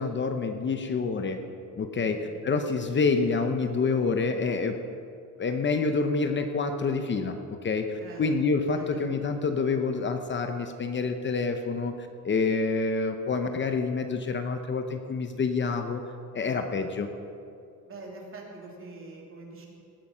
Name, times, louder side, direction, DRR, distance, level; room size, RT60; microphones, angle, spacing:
voice 1, 0.0-1.4 1.8-4.8 5.4-7.4 7.6-16.0 16.3-17.1, left 4 dB, 35° left, 6 dB, 0.8 m, -27 dB
voice 2, 8.7-9.1 16.3-16.6 17.9-19.7, right 3 dB, 40° right, -1 dB, 2.9 m, -44 dB
18.0 x 9.4 x 5.6 m, 2.5 s
cardioid pair, 145°, 32 cm